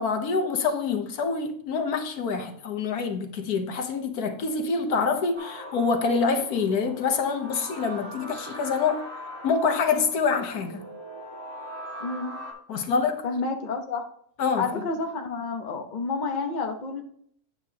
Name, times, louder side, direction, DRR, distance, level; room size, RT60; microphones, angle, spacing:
voice 1, 0.0-9.1 9.4-10.9 12.7-13.2 14.4-14.7, left 5 dB, 70° left, 1.4 m, -26 dB
sound 1, 5.3-12.5, equal, 55° right, 3.2 m, -41 dB
voice 2, 12.0-12.3 13.2-14.0 14.6-17.0, left 4 dB, 35° left, 1.0 m, -30 dB
9.3 x 8.5 x 2.9 m
omnidirectional pair, 1.7 m